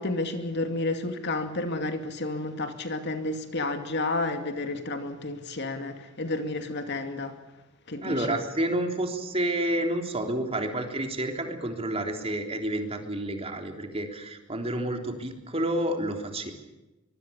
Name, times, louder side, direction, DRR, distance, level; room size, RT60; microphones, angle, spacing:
voice 1, 0.0-7.4 7.9-8.4, left 2 dB, 55° left, 6 dB, 2.6 m, -31 dB
voice 2, 8.0-16.5, right 1 dB, 30° right, 4 dB, 3.5 m, -29 dB
24.0 x 23.5 x 7.1 m, 1.0 s
head